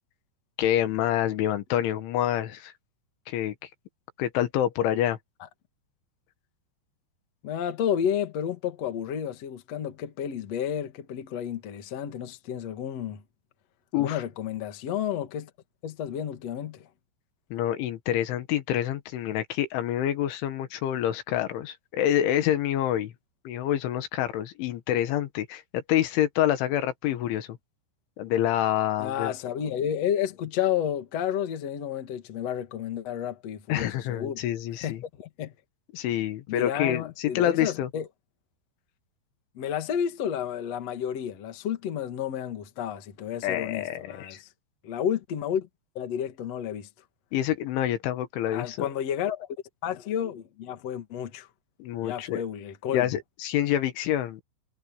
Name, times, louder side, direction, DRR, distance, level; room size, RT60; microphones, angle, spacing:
voice 1, 0.6-2.7 3.3-3.7 4.2-5.2 13.9-14.2 17.5-23.1 23.5-27.5 28.2-29.3 33.7-35.0 35.9-37.9 43.4-44.4 47.3-48.9 51.8-52.4 52.9-54.4, left 11 dB, 80° left, 4.0 m, -27 dB
voice 2, 7.4-13.2 14.0-15.5 15.8-16.9 29.0-34.4 34.8-35.5 36.5-38.1 39.5-44.5 44.8-45.7 46.0-46.9 48.5-49.5 49.8-51.5 52.0-53.1, left 9 dB, 50° left, 2.2 m, -31 dB
omnidirectional pair, 5.4 m